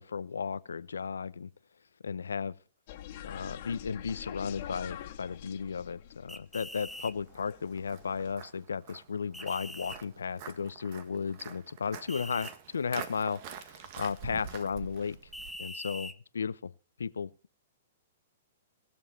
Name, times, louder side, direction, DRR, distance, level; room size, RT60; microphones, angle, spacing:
voice 1, 0.0-1.5 2.0-2.6 3.3-15.2 15.6-16.7 17.0-17.3, left 6 dB, 85° left, 0.7 m, -35 dB
sound 1, 2.9-8.3, left 11 dB, 50° left, 1.8 m, -46 dB
sound 2, 6.3-7.1 9.3-10.0 12.1-12.5 15.3-16.2, left 1 dB, ahead, 0.7 m, -43 dB
Walk footsteps, 6.9-15.5, right 8 dB, 45° right, 1.8 m, -47 dB
19.5 x 7.2 x 4.1 m
hypercardioid pair, 125°, 0 cm